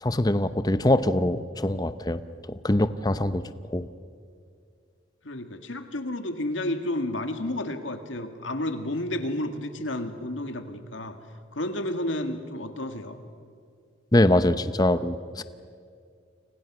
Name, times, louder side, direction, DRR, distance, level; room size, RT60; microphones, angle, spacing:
voice 1, 0.0-2.2 2.5-3.4 3.7-3.9 14.1-15.4, left 1 dB, 20° left, 13 dB, 0.7 m, -23 dB
voice 2, 5.2-11.2 11.5-13.2, left 1 dB, 85° left, 7 dB, 2.0 m, -31 dB
30.0 x 25.5 x 6.2 m, 2.3 s
head